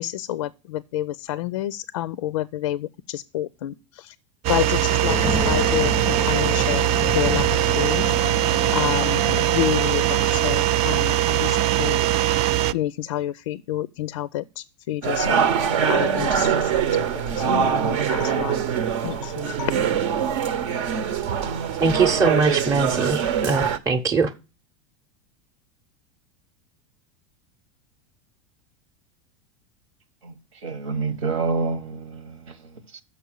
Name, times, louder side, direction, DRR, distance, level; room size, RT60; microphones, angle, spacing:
voice 1, 0.0-4.2 4.5-8.1 8.7-12.0 12.7-15.5 15.9-16.8 17.3-18.6 19.0-19.7, left 14 dB, 85° left, 0.4 m, -29 dB
sound 1, 4.4-12.7, right 12 dB, 40° right, 0.4 m, -21 dB
sound 2, 5.1-11.7, left 5 dB, 15° left, 0.5 m, -32 dB
sound 3, 15.0-23.8, right 7 dB, 70° right, 0.9 m, -23 dB
voice 2, 21.8-24.3, right 4 dB, 20° right, 0.7 m, -22 dB
voice 3, 30.6-33.0, right 4 dB, 85° right, 1.3 m, -28 dB
6.8 x 5.6 x 6.4 m
supercardioid pair, 110°, 16 cm